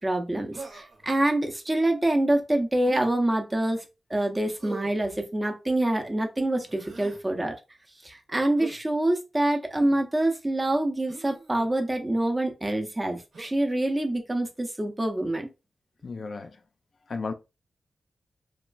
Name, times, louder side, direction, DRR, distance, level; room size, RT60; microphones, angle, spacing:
voice 1, 0.0-7.5 8.0-15.5, right 1 dB, 15° right, 0.5 m, -26 dB
Human voice, 0.5-1.1 2.8-3.1 4.6-5.0 6.6-7.2 8.6-8.8 9.7-10.0 11.1-11.7 13.3-13.6, right 3 dB, 65° right, 0.9 m, -42 dB
voice 2, 16.0-16.6 17.1-17.3, left 4 dB, 50° left, 0.3 m, -33 dB
3.0 x 2.2 x 2.4 m
wide cardioid pair, 145°, 0 cm